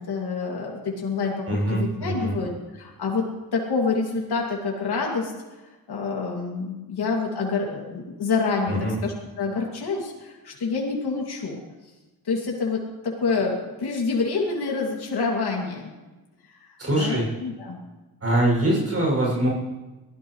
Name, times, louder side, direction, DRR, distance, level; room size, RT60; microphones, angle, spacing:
voice 1, 0.1-1.4 1.7-3.3 3.5-5.3 5.9-8.7 9.0-11.6 12.2-15.9 16.6-16.7 17.0-17.8, left 4 dB, 90° left, -2 dB, 2.6 m, -27 dB
voice 2, 1.5-2.4 8.7-8.9 16.8-17.3 18.2-19.5, right 1 dB, 40° right, -3 dB, 6.6 m, -23 dB
23.5 x 15.0 x 3.2 m, 1.2 s
wide cardioid pair, 110°, 38 cm